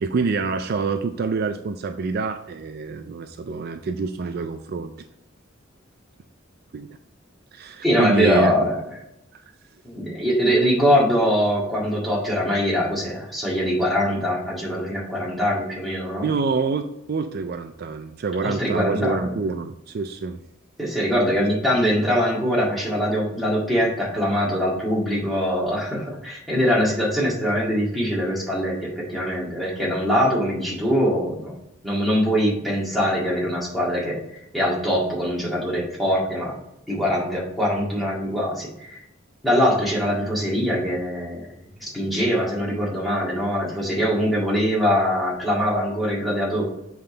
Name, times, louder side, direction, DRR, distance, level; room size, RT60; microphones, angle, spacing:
voice 1, 0.0-4.9 6.7-7.0 7.5-8.5 9.3-9.4 16.2-20.4, right 4 dB, 50° right, 8 dB, 0.4 m, -26 dB
voice 2, 7.8-8.7 9.8-16.3 18.4-19.3 20.8-31.5 31.8-34.2 34.5-36.6 36.9-39.0 39.4-41.5 41.8-46.6, equal, ahead, -5 dB, 1.9 m, -23 dB
7.6 x 3.6 x 3.9 m, 0.83 s
head